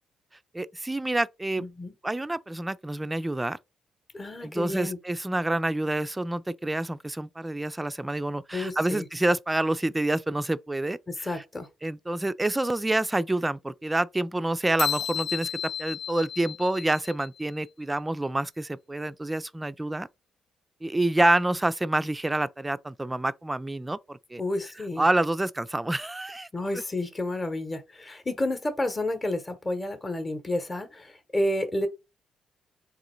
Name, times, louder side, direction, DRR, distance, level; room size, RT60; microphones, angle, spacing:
voice 1, 0.5-1.6 2.0-3.6 4.4-11.3 11.8-15.5 15.8-20.1 20.8-24.4 25.0-26.5, right 1 dB, 15° right, 0.3 m, -27 dB
voice 2, 1.6-1.9 4.1-5.0 8.5-9.1 11.1-11.7 24.4-25.0 26.5-31.9, left 1 dB, 20° left, 0.9 m, -30 dB
sound 1, 14.8-17.4, left 9 dB, 75° left, 0.9 m, -33 dB
3.8 x 3.0 x 4.3 m
cardioid pair, 90°, 0 cm